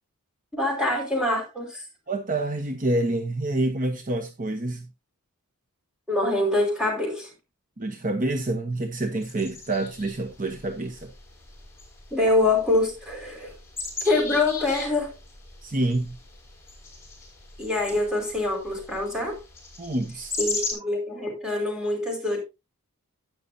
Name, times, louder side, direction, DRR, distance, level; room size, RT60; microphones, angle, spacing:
voice 1, 0.5-1.8 6.1-7.3 12.1-13.5 14.0-15.1 17.6-19.4 20.4-22.4, left 2 dB, 5° right, 4.8 m, -25 dB
voice 2, 2.1-4.8 7.8-11.1 15.6-16.2 19.8-20.5, right 2 dB, 35° right, 1.0 m, -27 dB
sound 1, 9.2-20.7, left 3 dB, 10° left, 5.9 m, -38 dB
12.5 x 9.7 x 2.7 m
head